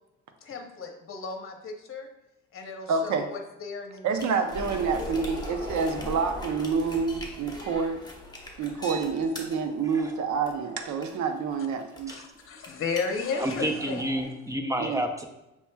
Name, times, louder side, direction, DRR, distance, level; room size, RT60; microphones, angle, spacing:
voice 1, 0.4-2.1 2.5-4.1 4.4-4.5 4.8-5.3 12.1-14.1, left 4 dB, 45° left, 3 dB, 0.8 m, -35 dB
voice 2, 2.9-3.3 4.0-8.0 8.6-12.2 14.8-15.0, right 5 dB, 70° right, 6 dB, 0.7 m, -28 dB
sound 1, 4.1-14.2, left 1 dB, 15° left, 1.0 m, -40 dB
voice 3, 13.4-15.3, equal, 10° right, 4 dB, 0.6 m, -29 dB
6.9 x 3.0 x 2.2 m, 0.91 s
cardioid pair, 90°, 30 cm